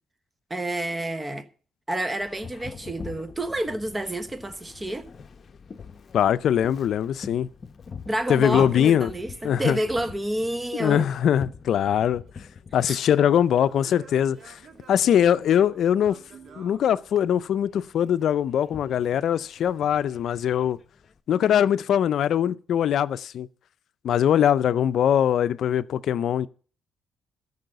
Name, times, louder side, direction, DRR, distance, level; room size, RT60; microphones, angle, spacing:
voice 1, 0.5-1.5 1.9-5.1 8.1-11.1 12.8-13.0, right 1 dB, 15° right, 1.1 m, -29 dB
Boat Water vehicle, 2.2-21.2, left 5 dB, 45° left, 0.9 m, -45 dB
voice 2, 6.1-7.5 8.3-9.1 9.4-9.8 10.8-12.2 12.7-14.6 14.9-16.2 16.6-20.8 21.3-23.5 24.0-26.5, left 9 dB, 70° left, 0.5 m, -22 dB
Singing / Plucked string instrument, 11.8-17.7, right 5 dB, 60° right, 2.2 m, -51 dB
13.5 x 5.5 x 7.9 m
cardioid pair, 90°, 0 cm